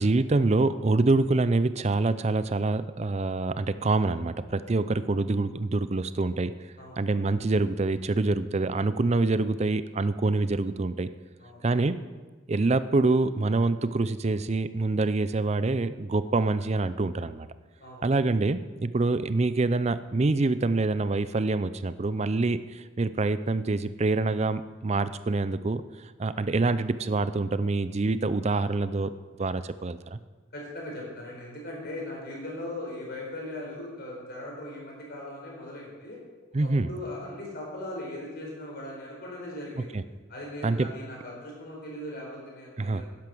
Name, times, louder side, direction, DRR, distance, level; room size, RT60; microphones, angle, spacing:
voice 1, 0.0-6.5 7.0-11.1 11.6-12.0 12.5-17.5 18.0-25.8 26.2-29.1 29.4-30.2 36.5-36.9 39.9-40.0 40.6-40.9 42.8-43.0, right 3 dB, 35° right, 14 dB, 0.5 m, -26 dB
voice 2, 6.8-7.3 11.4-11.6 17.8-18.0 30.5-36.2 36.6-39.9 40.3-43.0, left 1 dB, 55° left, -2 dB, 4.5 m, -39 dB
11.0 x 10.5 x 6.2 m, 1.3 s
head